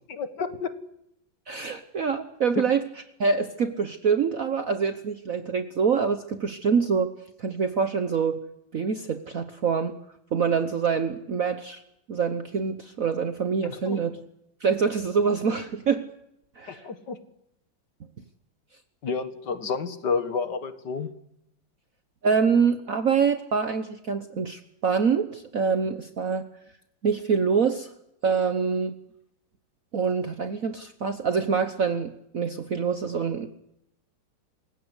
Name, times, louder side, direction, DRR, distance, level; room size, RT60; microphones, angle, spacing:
voice 1, 0.1-0.7 13.6-14.0 16.7-17.2 19.0-21.1, left 5 dB, 60° left, 10 dB, 2.3 m, -30 dB
voice 2, 1.5-2.8 3.2-7.1 7.4-8.4 8.7-10.0 10.3-11.8 12.1-14.2 14.6-16.0 16.6-16.9 22.2-26.5 27.0-27.9 28.2-28.9 29.9-33.5, right 6 dB, 50° right, 8 dB, 1.3 m, -25 dB
28.0 x 16.5 x 8.2 m, 0.80 s
omnidirectional pair, 2.2 m